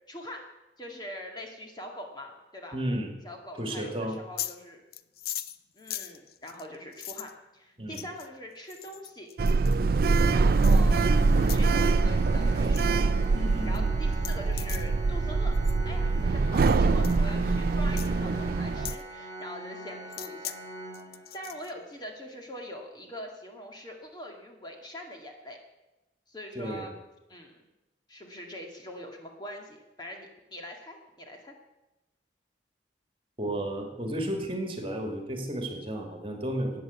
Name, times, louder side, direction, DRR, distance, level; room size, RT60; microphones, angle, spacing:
voice 1, 0.1-0.4 0.8-2.8 3.2-4.8 5.7-9.3 10.3-11.0 11.4-13.0 13.7-15.5 15.9-20.5 21.3-25.6 26.3-26.9 27.3-27.6 28.1-31.5, equal, 25° left, 1 dB, 2.0 m, -43 dB
voice 2, 2.7-3.1 3.6-4.2 7.8-8.0 13.3-14.0 26.5-26.8 33.4-36.8, right 1 dB, 30° right, 3 dB, 2.4 m, -33 dB
sound 1, 4.1-4.6 4.9-7.3 7.9-8.3 8.7-9.8 10.6-10.8 11.4-11.6 12.0-12.3 12.5-12.8 13.2-13.3 13.7-13.8 14.1-14.9 15.5-15.8 16.6-16.8 17.0-17.2 18.0-18.1 18.9-19.0 20.1-20.6 20.9-21.7, left 12 dB, 55° left, 0.6 m, -39 dB
Sliding door, 9.4-18.9, right 3 dB, 55° right, 0.4 m, -24 dB
Organ, 10.8-21.7, right 1 dB, 70° left, 4.2 m, -42 dB
15.0 x 9.3 x 8.1 m, 1.0 s
head